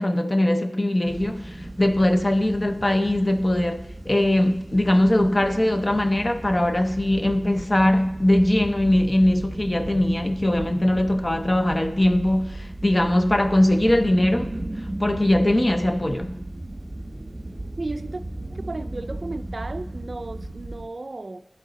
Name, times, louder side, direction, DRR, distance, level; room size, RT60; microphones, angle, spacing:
voice 1, 0.0-14.5 14.8-16.3, left 1 dB, 30° left, 0.6 m, -21 dB
sound 1, 1.0-20.9, right 1 dB, 30° right, 0.9 m, -35 dB
voice 2, 17.8-18.2 18.5-21.4, right 2 dB, 50° right, 0.4 m, -34 dB
10.5 x 3.9 x 3.9 m
wide cardioid pair, 65°, 0 cm